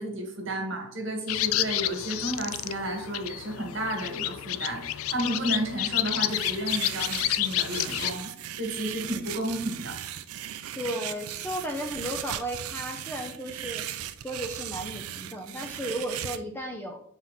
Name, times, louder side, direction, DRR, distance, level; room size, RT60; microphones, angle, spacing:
voice 1, 0.0-10.0, right 1 dB, 55° right, 2 dB, 1.8 m, -32 dB
sound 1, 1.3-8.1, left 13 dB, 75° left, 0.4 m, -30 dB
sound 2, 6.3-16.4, right 11 dB, 85° right, 0.5 m, -37 dB
voice 2, 10.8-13.9 14.2-17.0, equal, 10° left, 3 dB, 0.6 m, -34 dB
7.6 x 4.3 x 4.1 m, 0.69 s
head